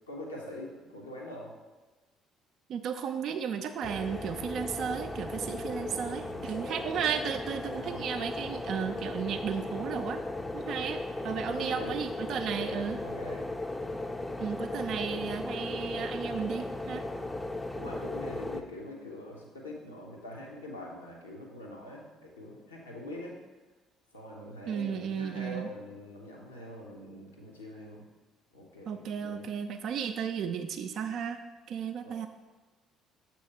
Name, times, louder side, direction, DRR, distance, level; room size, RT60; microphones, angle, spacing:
voice 1, 0.1-1.5 5.5-5.9 6.2-6.8 7.7-8.1 11.5-12.0 12.6-13.5 17.7-23.4 24.1-28.0 28.5-29.5 32.0-32.3, left 1 dB, 80° left, -2 dB, 0.9 m, -44 dB
voice 2, 2.7-10.2 10.5-13.0 14.4-17.0 24.7-25.7 28.9-31.4 31.7-32.3, right 7 dB, 50° right, 7 dB, 0.3 m, -34 dB
sound 1, 3.8-18.6, left 2 dB, 10° left, 0.4 m, -36 dB
6.9 x 3.0 x 5.5 m, 1.2 s
figure-of-eight pair, 50°, 0 cm